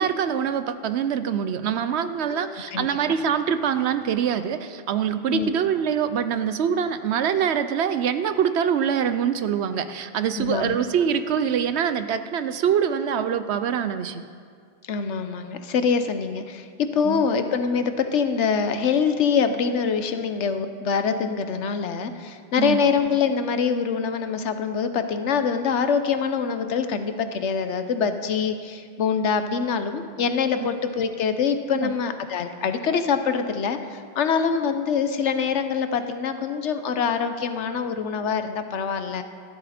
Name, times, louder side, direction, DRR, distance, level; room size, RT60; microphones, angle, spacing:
voice 1, 0.0-14.3 17.0-17.3 22.6-22.8 30.6-30.7 31.8-31.9, right 8 dB, 70° right, 11 dB, 0.9 m, -24 dB
voice 2, 2.3-2.9 5.3-5.5 10.4-10.8 14.9-39.2, left 6 dB, 80° left, 9 dB, 1.1 m, -24 dB
13.0 x 12.5 x 4.3 m, 2.2 s
omnidirectional pair, 1.2 m